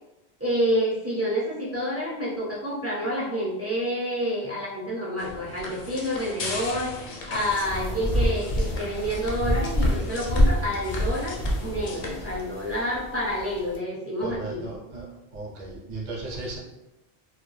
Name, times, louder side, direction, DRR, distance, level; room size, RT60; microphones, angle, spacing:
voice 1, 0.4-14.7, equal, 25° right, -7 dB, 0.3 m, -28 dB
sound 1, 5.2-12.4, left 3 dB, 70° left, 0.7 m, -38 dB
sound 2, 7.3-13.8, equal, 45° left, 0.4 m, -27 dB
voice 2, 14.2-16.6, right 3 dB, 50° right, -3 dB, 0.7 m, -36 dB
2.2 x 2.1 x 3.1 m, 0.96 s
omnidirectional pair, 1.1 m